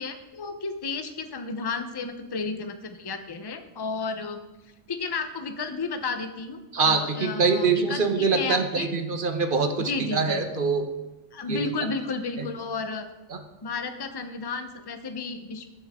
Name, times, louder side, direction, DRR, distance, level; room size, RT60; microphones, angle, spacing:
voice 1, 0.0-4.4 4.9-8.9 9.8-10.5 11.3-13.1 13.6-15.7, left 4 dB, 25° left, 8 dB, 0.7 m, -32 dB
voice 2, 6.7-10.9 11.5-11.7 12.4-12.5 13.3-13.4, right 4 dB, 45° right, 6 dB, 1.2 m, -24 dB
19.5 x 7.8 x 3.7 m, 1.1 s
omnidirectional pair, 1.4 m